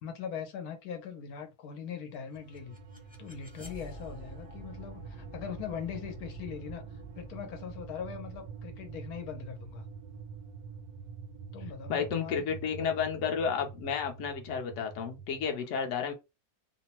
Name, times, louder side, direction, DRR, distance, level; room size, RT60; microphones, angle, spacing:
voice 1, 0.0-2.8 3.2-6.8 7.2-9.9 11.5-12.5 12.8-12.9, left 7 dB, 85° left, 1.2 m, -41 dB
sound 1, 2.1-11.1, equal, 10° right, 0.4 m, -53 dB
sound 2, 2.2-15.5, right 5 dB, 80° right, 1.1 m, -46 dB
voice 2, 11.9-16.1, left 6 dB, 65° left, 0.9 m, -32 dB
2.9 x 2.0 x 2.9 m
omnidirectional pair, 1.6 m